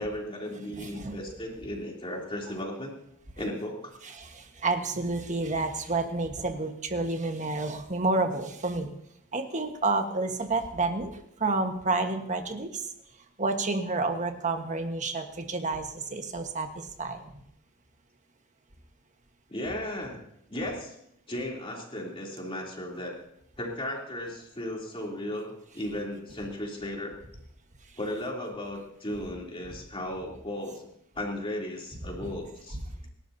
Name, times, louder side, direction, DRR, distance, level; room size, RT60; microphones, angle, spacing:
voice 1, 0.0-2.9 3.4-3.9 19.5-21.0 21.3-23.2 23.6-27.2 28.0-30.9 31.1-32.8, left 1 dB, 25° left, -1 dB, 3.3 m, -35 dB
voice 2, 0.6-1.2 4.0-8.9 9.3-11.1 11.4-12.9 13.4-17.2, right 3 dB, 35° right, 5 dB, 1.4 m, -30 dB
26.5 x 12.0 x 2.8 m, 0.74 s
head